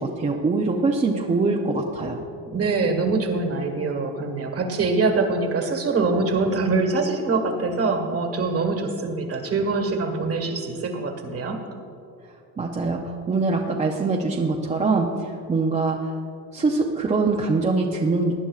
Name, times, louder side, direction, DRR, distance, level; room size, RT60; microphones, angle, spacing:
voice 1, 0.0-2.2 12.6-16.1 16.5-18.3, right 3 dB, 20° right, 0 dB, 0.6 m, -23 dB
voice 2, 2.5-11.6, right 3 dB, 35° right, 5 dB, 1.5 m, -24 dB
19.0 x 9.9 x 2.4 m, 2.6 s
cardioid pair, 135°, 40 cm